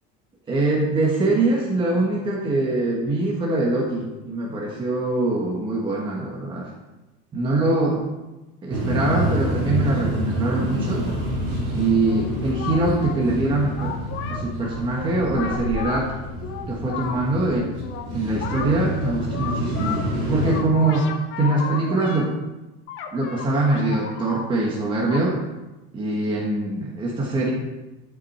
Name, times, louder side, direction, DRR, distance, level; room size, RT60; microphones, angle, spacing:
voice 1, 0.5-6.7 7.3-8.0 8.6-11.1 11.7-13.9 14.3-16.1 16.7-17.7 18.1-20.0 20.3-22.3 23.1-25.4 25.9-27.5, right 2 dB, 15° right, -3 dB, 1.3 m, -23 dB
sound 1, 8.7-20.6, equal, 50° right, 4.2 m, -28 dB
sound 2, 12.1-13.1 13.8-16.0 16.4-20.1 20.4-22.3 22.9-24.4 25.1-25.2, left 7 dB, 40° left, 1.1 m, -34 dB
12.5 x 7.6 x 4.3 m, 1.1 s
cardioid pair, 175°, 30 cm